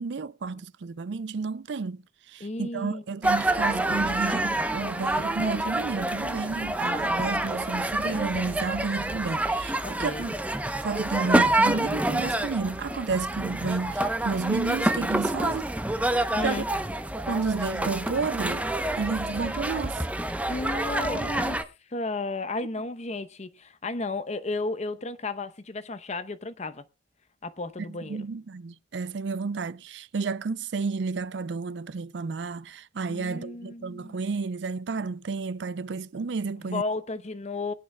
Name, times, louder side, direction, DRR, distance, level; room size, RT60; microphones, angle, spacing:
voice 1, 0.0-2.0 2.3-10.3 10.8-15.7 16.4-16.6 17.3-18.6 19.0-20.1 27.9-36.8, right 4 dB, 70° right, 0.5 m, -31 dB
voice 2, 2.4-3.0 9.8-10.3 16.4-16.7 20.4-26.8 27.4-28.3 33.1-34.2 36.7-37.7, left 3 dB, 40° left, 0.8 m, -33 dB
sound 1, 3.2-21.6, right 1 dB, 10° right, 0.7 m, -27 dB
22.0 x 8.9 x 2.2 m
head